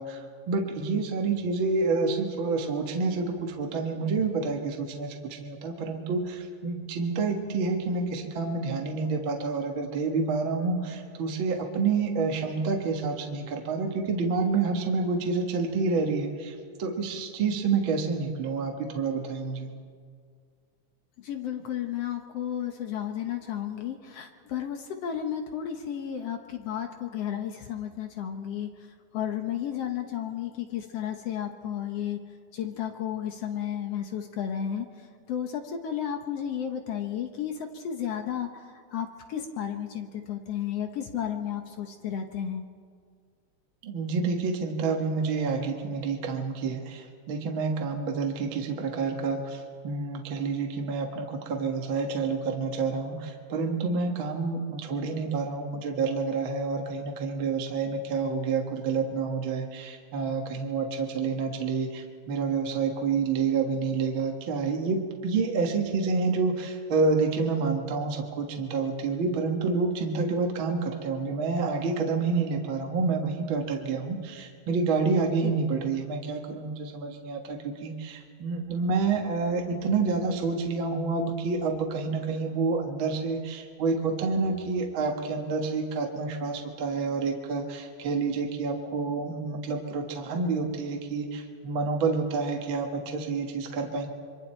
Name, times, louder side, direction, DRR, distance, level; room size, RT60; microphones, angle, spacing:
voice 1, 0.0-19.7 43.8-94.1, right 4 dB, 50° right, 2 dB, 1.8 m, -28 dB
voice 2, 21.2-28.7 29.1-32.2 32.5-34.9 35.3-38.6 38.9-42.6 75.4-75.5, left 9 dB, 65° left, 6 dB, 1.8 m, -33 dB
27.5 x 23.5 x 4.4 m, 2.1 s
omnidirectional pair, 3.7 m